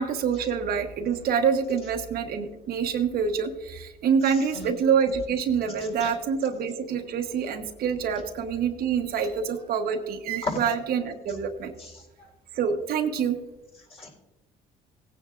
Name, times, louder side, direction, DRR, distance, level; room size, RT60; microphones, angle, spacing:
voice 1, 0.0-11.7 12.5-13.4, right 6 dB, 65° right, 5 dB, 1.1 m, -26 dB
voice 2, 4.2-4.7 5.8-6.1 10.4-10.6 11.8-12.3 13.9-14.1, left 3 dB, 35° left, 0 dB, 4.0 m, -36 dB
17.5 x 9.6 x 2.5 m, 1.0 s
cardioid pair, 110°, 17 cm